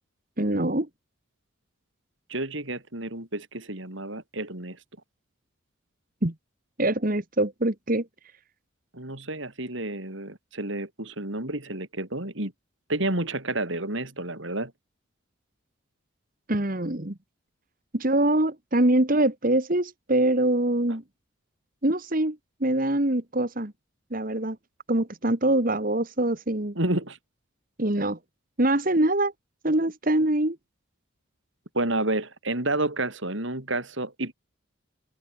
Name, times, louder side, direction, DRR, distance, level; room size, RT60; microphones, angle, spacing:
voice 1, 0.4-0.9 6.2-6.3 6.8-8.1 16.5-17.1 17.9-21.0 21.8-23.7 24.1-24.6 24.9-26.8 27.8-28.2 28.6-29.3 29.6-30.6, right 1 dB, 40° right, 1.8 m, -24 dB
voice 2, 2.3-4.8 8.9-12.5 12.9-14.7 26.8-27.2 31.7-34.3, right 2 dB, 65° right, 4.2 m, -30 dB
head